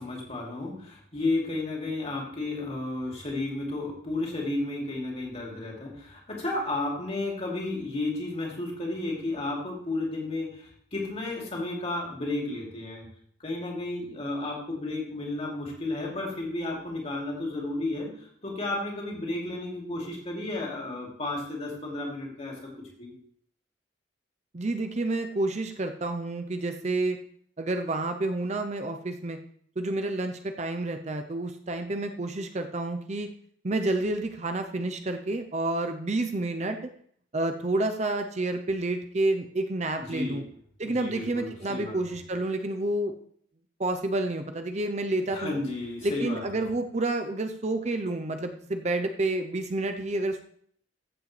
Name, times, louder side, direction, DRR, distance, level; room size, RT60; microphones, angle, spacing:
voice 1, 0.0-13.1 13.4-18.1 18.4-22.7 23.0-23.1 40.0-40.5 40.8-42.0 45.3-46.7, left 2 dB, 35° left, -2 dB, 2.7 m, -32 dB
voice 2, 24.5-27.2 27.6-29.4 29.8-33.3 33.6-36.8 37.3-40.4 40.8-43.1 43.8-45.6 46.0-50.4, right 2 dB, 35° right, 6 dB, 0.6 m, -29 dB
14.5 x 7.5 x 3.3 m, 0.63 s
head